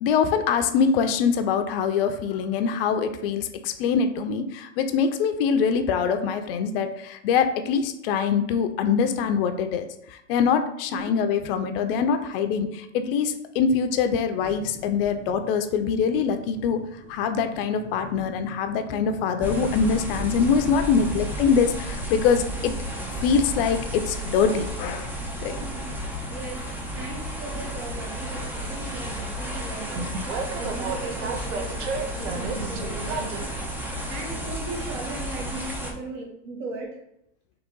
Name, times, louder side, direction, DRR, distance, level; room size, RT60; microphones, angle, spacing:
voice 1, 0.0-16.8 17.1-22.7 23.2-25.1 25.4-25.7, left 6 dB, 55° left, 8 dB, 0.5 m, -24 dB
sound 1, 14.4-22.7, equal, 20° right, 1.2 m, -45 dB
sound 2, 19.4-35.9, equal, 5° right, 0.3 m, -33 dB
Train, 19.9-33.4, right 3 dB, 85° right, 0.8 m, -37 dB
voice 2, 26.1-37.0, right 2 dB, 55° right, 1 dB, 1.3 m, -38 dB
3.9 x 3.0 x 3.7 m, 0.77 s
supercardioid pair, 125°, 35 cm